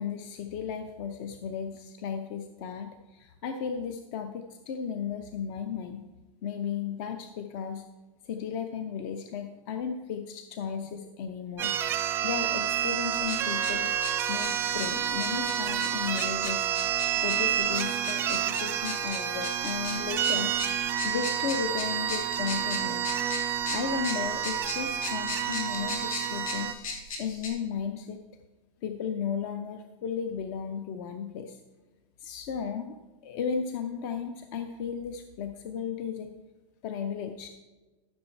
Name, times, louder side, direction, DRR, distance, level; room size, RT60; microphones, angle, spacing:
voice 1, 0.0-6.0 6.4-7.8 8.2-11.8 12.2-13.9 14.3-16.7 17.2-20.5 21.0-23.1 23.7-26.8 27.2-28.2 28.8-31.6 32.2-33.0 33.2-36.3 36.8-37.5, left 7 dB, 35° left, 7 dB, 0.6 m, -35 dB
sound 1, 11.6-26.7, right 10 dB, 15° right, 0.3 m, -29 dB
sound 2, 13.1-27.5, left 3 dB, 90° left, 2.7 m, -39 dB
13.5 x 6.4 x 4.5 m, 1.2 s
supercardioid pair, 175°, 17 cm